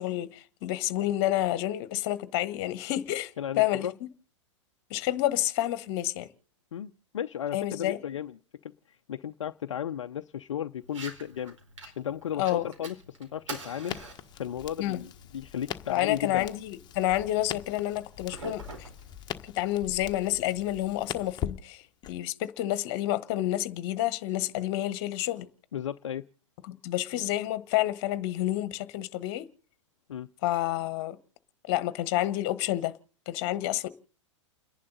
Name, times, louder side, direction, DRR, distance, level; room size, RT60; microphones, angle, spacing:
voice 1, 0.0-3.9 4.9-6.3 7.5-8.0 12.4-12.7 14.8-15.0 15.9-18.9 19.4-21.8 22.1-25.5 26.7-29.5 30.4-31.2 31.7-33.0 33.3-33.9, left 14 dB, 50° left, 1.4 m, -29 dB
voice 2, 3.4-3.9 6.7-8.4 8.9-11.6 12.0-14.0 14.3-16.5 25.7-26.2 30.1-30.3, left 9 dB, 70° left, 0.6 m, -35 dB
Fire, 10.8-19.8, right 3 dB, 75° right, 4.6 m, -47 dB
Crackle, 13.8-22.1, left 10 dB, 25° left, 1.4 m, -41 dB
30.0 x 11.0 x 4.0 m
figure-of-eight pair, 100°, 16 cm